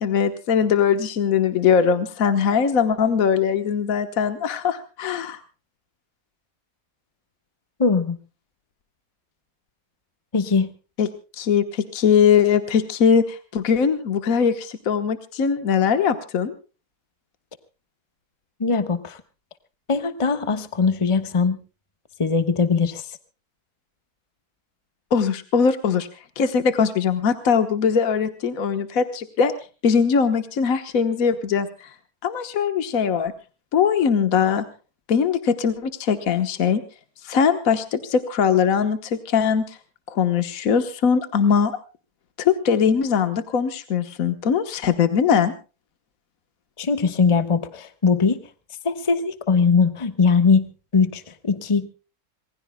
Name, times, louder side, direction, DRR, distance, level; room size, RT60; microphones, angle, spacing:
voice 1, 0.0-5.4 11.0-11.1 11.3-16.5 25.1-26.1 26.4-29.5 29.8-31.9 32.2-33.3 33.7-34.6 35.1-36.8 37.2-39.8 40.1-41.8 42.4-45.5, left 7 dB, 65° left, 9 dB, 1.6 m, -21 dB
voice 2, 7.8-8.2 10.3-10.7 18.6-19.2 19.9-21.6 22.2-23.1 46.8-48.4 48.8-50.7 50.9-51.9, left 5 dB, 20° left, 10 dB, 1.2 m, -20 dB
26.5 x 20.5 x 2.2 m, 0.34 s
omnidirectional pair, 1.6 m